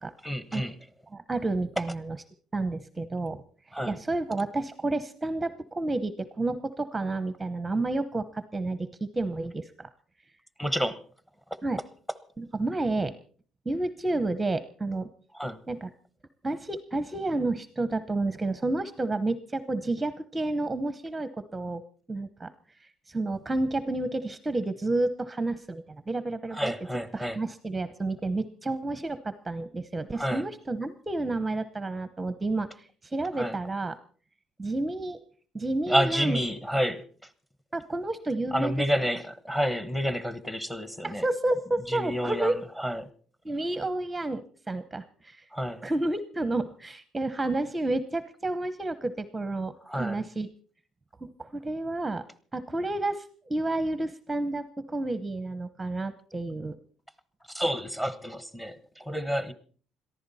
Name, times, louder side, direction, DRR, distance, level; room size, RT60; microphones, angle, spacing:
voice 1, 0.2-0.7 3.7-4.0 10.6-11.0 11.5-11.6 15.3-15.6 26.5-27.4 30.1-30.4 33.4-33.6 35.9-37.0 38.5-41.3 41.9-43.1 45.5-45.8 49.8-50.2 57.5-59.5, equal, 5° left, 1.1 m, -29 dB
voice 2, 1.1-2.2 2.5-3.4 3.9-8.9 9.1-9.9 11.6-11.8 12.4-13.1 13.7-15.1 15.7-15.9 16.4-21.8 22.1-22.5 22.8-26.7 27.1-34.0 34.6-35.2 35.5-36.4 37.7-38.7 41.0-42.6 43.4-44.4 44.7-45.4 45.8-50.5 51.2-52.2 52.5-56.8, right 2 dB, 10° right, 0.8 m, -30 dB
22.0 x 14.5 x 4.2 m
cardioid pair, 150°, 0 cm